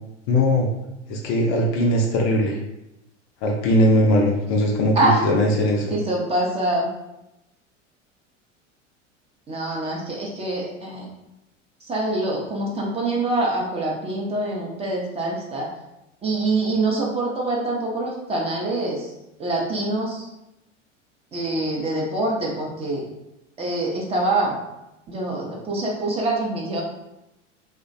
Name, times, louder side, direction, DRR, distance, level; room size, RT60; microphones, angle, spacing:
voice 1, 0.3-0.7 1.1-2.6 3.4-6.0, left 1 dB, 40° left, 1 dB, 0.5 m, -20 dB
voice 2, 5.9-6.9 9.5-11.1 11.8-15.7 16.2-19.1 19.4-20.3 21.3-23.1 23.6-24.6 25.1-26.8, right 2 dB, 15° right, -3 dB, 0.5 m, -25 dB
3.0 x 2.1 x 2.5 m, 0.91 s
figure-of-eight pair, 80°, 37 cm